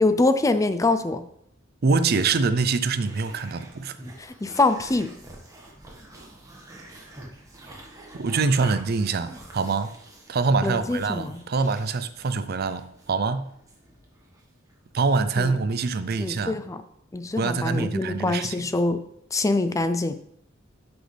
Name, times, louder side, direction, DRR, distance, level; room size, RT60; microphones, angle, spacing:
voice 1, 0.0-1.2 4.2-5.1 10.6-11.4 15.4-15.5 16.2-16.8 17.1-19.0 19.3-20.2, left 2 dB, 15° left, 0.4 m, -24 dB
voice 2, 1.8-4.0 8.1-9.9 10.3-13.5 14.9-16.6 17.4-18.7, right 4 dB, 50° right, 0.5 m, -25 dB
sound 1, 3.1-14.8, right 1 dB, 15° right, 1.5 m, -47 dB
10.5 x 6.1 x 3.3 m
head